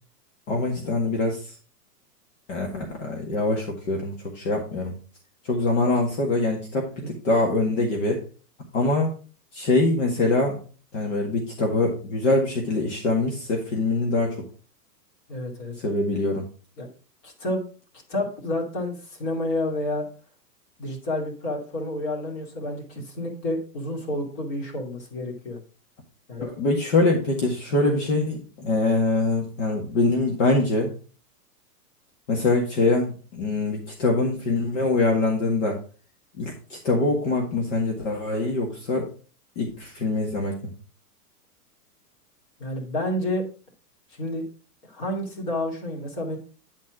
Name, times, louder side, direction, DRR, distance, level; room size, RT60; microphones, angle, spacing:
voice 1, 0.5-1.6 2.5-4.9 5.4-8.2 8.7-9.2 9.5-10.6 10.9-14.4 15.8-16.5 26.4-30.9 32.3-35.8 36.4-39.1 39.6-40.7, left 2 dB, 50° left, 0 dB, 1.9 m, -24 dB
voice 2, 15.3-15.7 16.8-16.9 17.2-17.6 18.1-20.1 20.8-25.6 26.3-26.5 42.6-43.4 44.2-44.4 44.8-46.4, left 1 dB, 30° left, 0 dB, 2.5 m, -29 dB
10.0 x 4.3 x 4.8 m, 0.39 s
hypercardioid pair, 170°, 48 cm